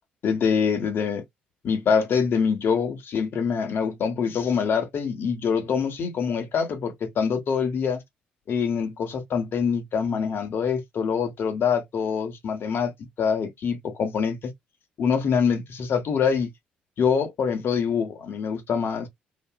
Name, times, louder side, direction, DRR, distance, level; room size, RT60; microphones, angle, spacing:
voice 1, 0.2-1.2 1.6-8.0 8.5-12.9 13.2-14.4 15.0-16.5 17.0-19.1, left 6 dB, 50° left, 1.2 m, -25 dB
2.9 x 2.7 x 2.2 m
hypercardioid pair, 50°, 5 cm